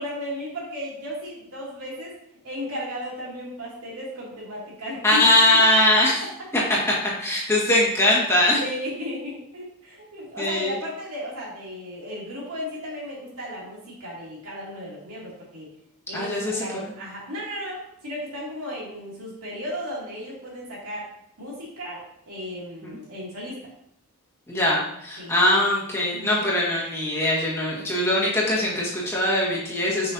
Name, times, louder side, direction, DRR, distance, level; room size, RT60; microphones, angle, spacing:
voice 1, 0.0-2.1 2.4-5.2 5.5-5.6 8.6-15.7 16.1-21.0 21.4-23.6 25.2-25.4 26.1-26.5, equal, 85° right, -5 dB, 2.5 m, -35 dB
voice 2, 5.0-6.2 7.2-8.6 10.4-10.7 16.1-16.6 24.5-30.1, left 1 dB, 10° left, -6 dB, 1.6 m, -21 dB
6.8 x 5.5 x 2.7 m, 0.75 s
head